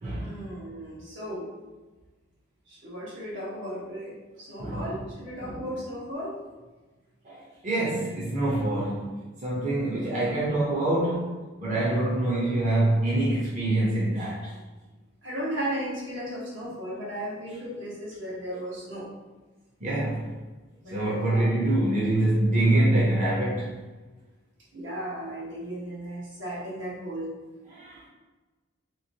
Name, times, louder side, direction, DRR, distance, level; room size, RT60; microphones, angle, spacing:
voice 1, 0.1-1.5 2.7-4.1 4.4-6.3 15.2-19.1 20.8-21.5 24.7-27.3, equal, 80° right, -7 dB, 1.3 m, -35 dB
voice 2, 7.6-9.1 9.4-11.3 11.6-14.4 19.8-20.3 20.9-23.7 27.8-28.0, right 1 dB, 40° right, -7 dB, 0.7 m, -25 dB
3.1 x 3.0 x 2.8 m, 1.2 s
head